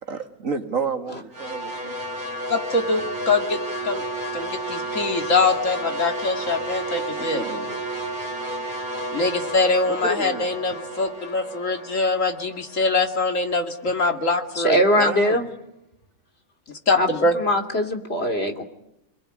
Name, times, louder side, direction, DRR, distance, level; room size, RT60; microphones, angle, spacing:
voice 1, 0.0-1.9 7.2-7.7 9.9-10.5 14.9-15.4, right 4 dB, 75° right, 6 dB, 2.4 m, -30 dB
sound 1, 1.3-13.6, right 1 dB, 35° right, 5.8 m, -31 dB
voice 2, 2.5-3.6 3.8-4.0 4.3-7.4 9.1-15.1 16.7-17.3, left 3 dB, 70° left, 5 dB, 2.8 m, -23 dB
voice 3, 14.5-15.4 17.0-18.6, equal, 50° left, 5 dB, 3.1 m, -22 dB
27.5 x 21.5 x 9.8 m, 0.83 s
omnidirectional pair, 1.4 m